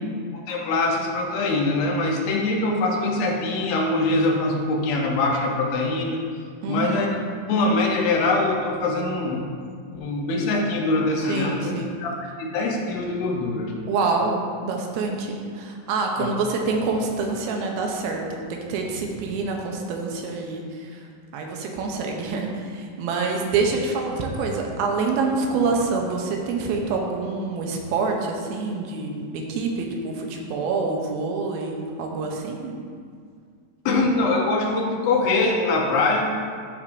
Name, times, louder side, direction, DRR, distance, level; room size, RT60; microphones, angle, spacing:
voice 1, 0.3-6.2 6.7-7.1 7.5-9.5 9.9-11.7 12.0-12.1 12.4-13.7 16.2-16.3 33.9-36.2, left 2 dB, 80° left, 0 dB, 2.7 m, -23 dB
voice 2, 6.6-7.1 11.3-11.9 13.9-21.0 21.3-32.7, right 4 dB, 85° right, 1 dB, 2.7 m, -26 dB
12.0 x 6.0 x 2.6 m, 2.1 s
omnidirectional pair, 4.2 m